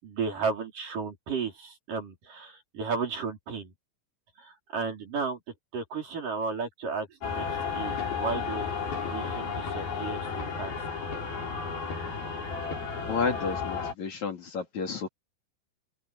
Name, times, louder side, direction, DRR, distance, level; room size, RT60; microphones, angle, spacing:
voice 1, 0.0-3.7 4.4-5.4 5.7-8.7 8.9-10.7, right 5 dB, 65° right, 6.4 m, -34 dB
sound 1, 7.2-13.9, left 5 dB, 85° left, 8.3 m, -33 dB
voice 2, 13.1-15.1, left 5 dB, 55° left, 4.1 m, -31 dB
open air
omnidirectional pair, 4.2 m